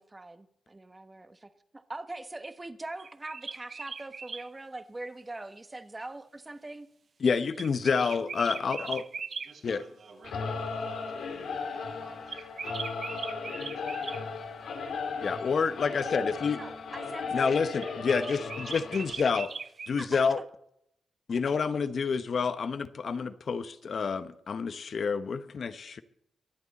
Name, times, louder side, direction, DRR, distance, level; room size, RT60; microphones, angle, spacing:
voice 1, 0.0-6.9 16.6-17.6 20.0-20.3, right 2 dB, 20° right, 10 dB, 1.1 m, -42 dB
sound 1, 3.0-4.5 7.5-9.5 12.3-14.2 17.8-20.0, right 5 dB, 50° right, 0.6 m, -39 dB
voice 2, 7.2-9.0 9.6-9.8 15.2-16.6 17.3-19.5 19.9-20.4 21.3-26.0, left 5 dB, 55° left, 12 dB, 0.9 m, -28 dB
voice 3, 9.4-14.2, right 4 dB, 75° right, -2 dB, 6.2 m, -54 dB
Singing / Musical instrument, 10.2-19.1, left 4 dB, 80° left, 2.0 m, -36 dB
24.0 x 8.4 x 4.1 m, 0.74 s
cardioid pair, 85°, 0 cm